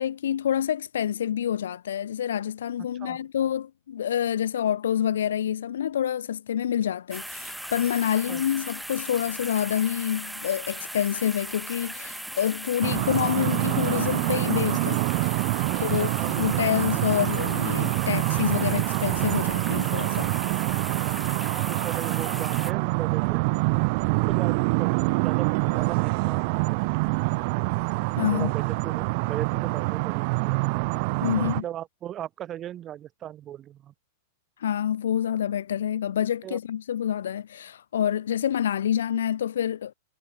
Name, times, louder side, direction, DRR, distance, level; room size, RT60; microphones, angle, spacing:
voice 1, 0.0-15.4 15.8-20.3 28.2-28.5 31.2-31.6 34.6-39.9, left 9 dB, 70° left, 0.5 m, -27 dB
sound 1, 7.1-22.7, equal, ahead, 0.9 m, -38 dB
sound 2, 12.8-31.6, right 29 dB, 50° right, 0.6 m, -26 dB
voice 2, 15.7-16.6 21.5-23.4 24.3-24.9 25.2-27.0 28.3-30.6 31.3-33.9 36.4-36.6, right 11 dB, 30° right, 1.5 m, -37 dB
sound 3, 21.0-31.7, right 8 dB, 75° right, 6.0 m, -53 dB
figure-of-eight pair, 100°, 0 cm